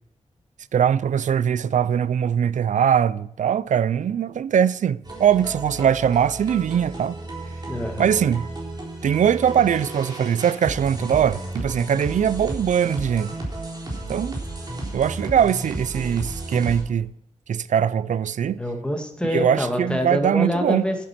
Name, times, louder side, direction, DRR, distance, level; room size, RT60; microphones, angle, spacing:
voice 1, 0.7-7.2 8.0-8.5 9.0-13.3 14.1-14.4 14.9-17.1 17.5-18.6 19.3-20.8, right 8 dB, 85° right, 0.4 m, -21 dB
sound 1, 5.0-16.8, right 2 dB, 35° right, 3.7 m, -33 dB
voice 2, 7.7-8.1 18.6-21.0, left 1 dB, 10° left, 2.0 m, -26 dB
10.5 x 8.1 x 5.9 m
wide cardioid pair, 110°, 12 cm